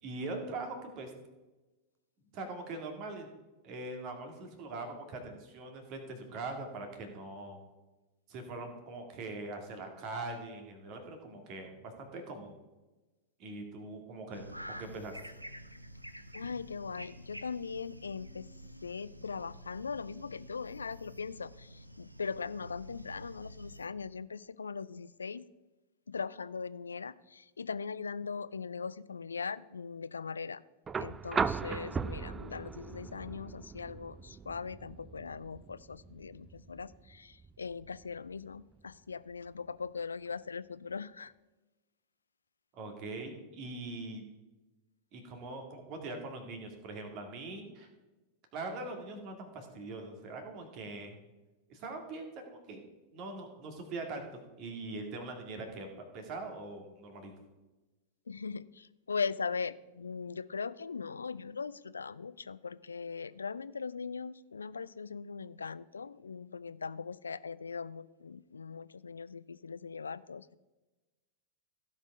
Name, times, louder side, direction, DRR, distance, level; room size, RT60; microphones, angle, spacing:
voice 1, 0.0-1.1 2.3-3.3 3.6-7.6 8.3-12.5 13.4-15.2 42.7-44.2 45.1-47.9 48.5-51.2 51.7-52.9 53.1-54.3 54.6-57.3, right 2 dB, 40° right, 4 dB, 2.2 m, -42 dB
sound 1, 14.3-23.9, equal, 90° right, 0.6 m, -49 dB
voice 2, 16.3-18.5 18.8-25.5 26.1-30.6 31.0-41.3 58.3-70.6, left 5 dB, 75° left, 17 dB, 0.3 m, -40 dB
sound 2, 30.9-38.9 40.3-40.4, right 5 dB, 20° right, 0.4 m, -38 dB
16.0 x 5.4 x 4.9 m, 1.1 s
figure-of-eight pair, 90°, 0 cm